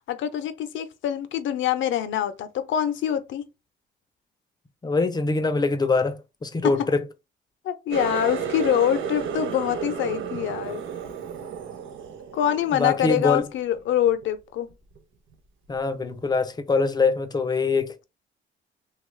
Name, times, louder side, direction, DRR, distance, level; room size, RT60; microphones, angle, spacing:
voice 1, 0.1-3.4 6.6-6.7 7.6-10.8 12.3-14.7, left 10 dB, 75° left, 0.6 m, -25 dB
voice 2, 4.8-7.1 12.7-13.5 15.7-18.0, left 3 dB, 20° left, 0.5 m, -23 dB
Water tap faucet, 7.9-13.4 13.8-14.2 14.7-15.0 15.7-15.8, right 7 dB, 75° right, 0.6 m, -32 dB
2.9 x 2.3 x 3.1 m
cardioid pair, 90°, 20 cm